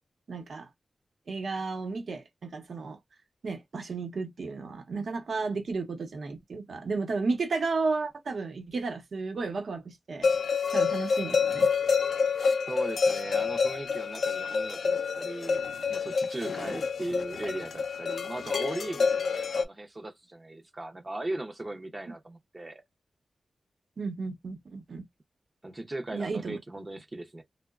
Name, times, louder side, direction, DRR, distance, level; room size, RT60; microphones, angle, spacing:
voice 1, 0.3-0.7 1.3-3.0 3.4-10.3 10.7-11.7 16.7-16.8 24.0-25.0 26.1-26.6, right 4 dB, 70° right, 0.8 m, -33 dB
sound 1, 10.2-19.6, left 5 dB, 80° left, 0.4 m, -28 dB
voice 2, 12.7-15.6 15.9-22.8 25.6-27.4, right 2 dB, 25° right, 0.5 m, -38 dB
2.9 x 2.1 x 2.3 m
wide cardioid pair, 110°, 0 cm